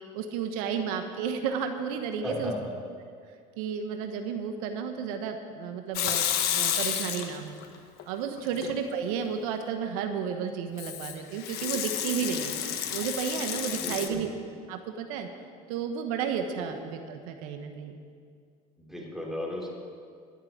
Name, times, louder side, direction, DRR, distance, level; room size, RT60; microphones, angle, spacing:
voice 1, 0.1-2.5 3.6-6.3 6.5-7.6 8.1-12.5 12.9-14.3 14.7-15.3 15.7-18.0, right 7 dB, 80° right, 6 dB, 1.1 m, -32 dB
voice 2, 2.2-2.6 8.5-8.6 13.7-14.4 16.6-16.9 18.8-19.7, left 1 dB, ahead, -3 dB, 3.4 m, -36 dB
Water tap faucet / Sink (filling or washing) / Liquid, 5.9-7.6 8.0-8.7 10.8-14.1, left 10 dB, 60° left, 1.3 m, -30 dB
12.5 x 6.8 x 9.8 m, 2.2 s
supercardioid pair, 105°, 18 cm